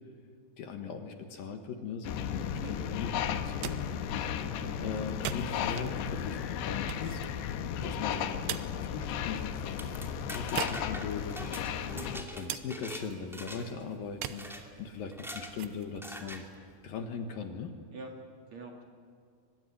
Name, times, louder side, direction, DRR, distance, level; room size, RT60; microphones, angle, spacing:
voice 1, 0.6-3.8 4.8-7.2 7.5-9.9 10.3-16.4 16.8-17.8, left 5 dB, 65° left, 5 dB, 2.8 m, -40 dB
sound 1, 2.0-12.2, left 8 dB, 90° left, 3.2 m, -35 dB
sound 2, 3.3-17.3, right 12 dB, 85° right, 2.9 m, -45 dB
voice 2, 4.6-4.9 11.9-12.2 17.9-18.1 18.5-18.8, right 4 dB, 45° right, 1 dB, 3.1 m, -45 dB
sound 3, 9.6-13.0 13.3-13.8 14.2-14.6 15.1-15.5 16.0-16.4, equal, ahead, 1.2 m, -43 dB
24.0 x 22.5 x 10.0 m, 2.1 s
omnidirectional pair, 4.8 m